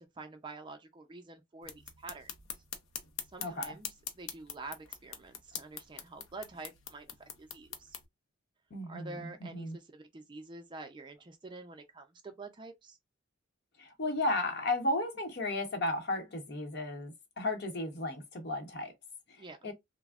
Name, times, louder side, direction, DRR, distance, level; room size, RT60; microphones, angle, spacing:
voice 1, 0.0-2.3 3.3-8.0 8.9-13.0 19.4-19.7, right 3 dB, 25° right, 0.4 m, -47 dB
sound 1, 1.6-8.0, left 8 dB, 80° left, 0.6 m, -44 dB
voice 2, 3.4-3.7 8.7-9.8 13.8-18.9 19.3-19.7, left 2 dB, 55° left, 0.8 m, -34 dB
3.3 x 2.0 x 2.3 m
head